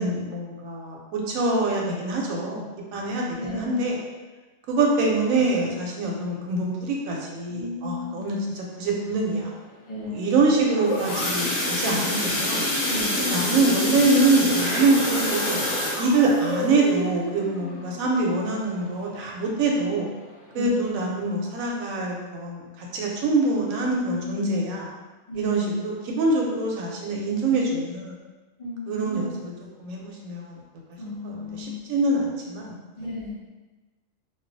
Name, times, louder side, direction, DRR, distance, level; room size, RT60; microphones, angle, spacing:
voice 1, 0.0-2.7 2.9-3.9 4.7-9.5 10.1-12.7 13.2-15.6 16.0-20.1 20.5-24.9 25.3-28.1 28.9-29.5 29.8-30.6 31.2-32.7, right 2 dB, 85° right, -2 dB, 1.0 m, -24 dB
voice 2, 3.4-4.0 7.5-8.3 9.9-10.4 11.8-12.4 12.9-13.3 19.5-20.0 20.5-20.8 23.8-24.5 25.3-25.8 28.6-29.4 31.0-31.8 33.0-33.3, left 1 dB, 50° left, -11 dB, 0.4 m, -35 dB
sound 1, 10.5-19.2 19.6-19.8 20.1-20.2 20.7-20.8, left 1 dB, 85° left, 1.1 m, -28 dB
2.3 x 2.3 x 2.5 m, 1.2 s
omnidirectional pair, 1.4 m